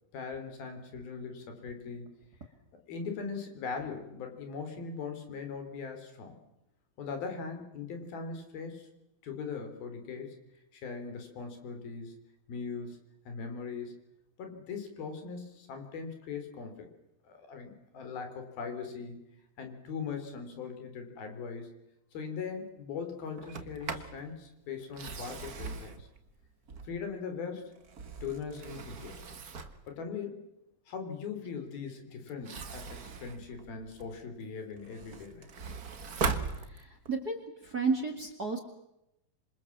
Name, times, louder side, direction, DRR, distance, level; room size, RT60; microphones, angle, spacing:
voice 1, 0.1-2.1 2.9-6.4 7.0-8.9 9.2-10.4 10.7-12.1 12.5-13.0 13.3-14.0 14.4-16.9 17.2-19.2 19.6-21.7 22.1-26.1 26.8-27.8 28.2-29.2 29.9-30.4 30.9-35.5, left 5 dB, 75° left, 5 dB, 5.4 m, -40 dB
Sliding door, 23.4-24.2 24.8-27.2 27.7-29.9 32.3-34.2 34.7-37.2, right 5 dB, 60° right, 0.9 m, -39 dB
voice 2, 36.8-38.6, right 4 dB, 30° right, 7 dB, 2.1 m, -32 dB
27.0 x 26.0 x 7.4 m, 0.85 s
omnidirectional pair, 4.3 m